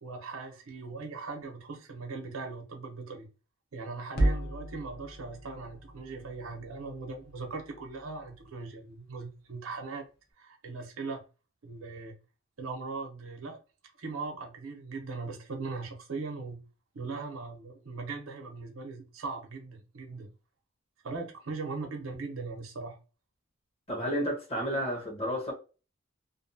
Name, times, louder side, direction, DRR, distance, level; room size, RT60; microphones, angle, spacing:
voice 1, 0.0-3.3 3.7-10.0 10.4-11.2 11.6-12.2 12.6-13.6 14.0-16.6 16.9-20.3 21.0-23.0, right 4 dB, 80° right, 0.8 m, -39 dB
sound 1, 4.2-8.5, right 1 dB, 50° left, 0.6 m, -34 dB
voice 2, 23.9-25.5, equal, 30° left, 0.9 m, -31 dB
2.6 x 2.3 x 2.6 m
head